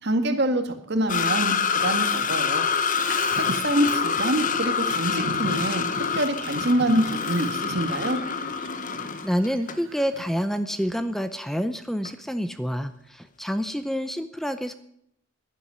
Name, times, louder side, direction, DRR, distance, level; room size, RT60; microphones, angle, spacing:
voice 1, 0.0-2.6 3.4-5.9 6.2-8.2, right 1 dB, 60° right, 6 dB, 2.0 m, -25 dB
sound 1, 1.1-9.8 10.2-10.3 12.1-12.2, left 6 dB, 45° left, 1.0 m, -26 dB
Bird vocalization bird call bird song, 3.0-10.3, right 3 dB, 75° right, 0.9 m, -39 dB
voice 2, 9.0-14.7, equal, ahead, 10 dB, 0.6 m, -28 dB
11.5 x 10.5 x 9.9 m, 0.73 s
head